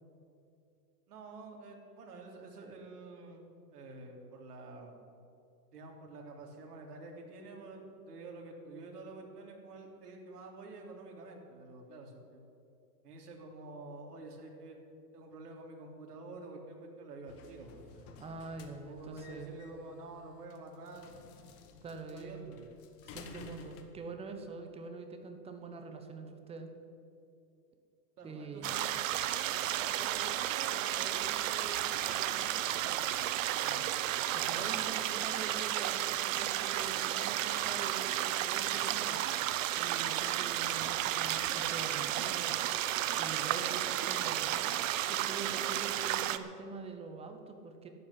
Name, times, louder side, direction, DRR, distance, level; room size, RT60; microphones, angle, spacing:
voice 1, 1.1-5.0 5.7-12.5 13.0-14.8 15.1-18.2 18.7-21.1 22.1-22.7 28.2-28.9 29.3-33.2 33.5-34.2, right 3 dB, 65° right, 1 dB, 3.4 m, -49 dB
sound 1, 17.3-23.8, left 6 dB, 25° left, 1.3 m, -54 dB
voice 2, 18.2-19.6 21.8-22.5 23.0-26.7 28.2-28.7 34.3-39.4 39.8-42.5 43.2-47.9, right 4 dB, 10° right, 6 dB, 0.9 m, -45 dB
sound 2, 28.6-46.4, right 13 dB, 50° right, 0.8 m, -33 dB
12.0 x 8.5 x 10.0 m, 2.6 s
hypercardioid pair, 145°, 49 cm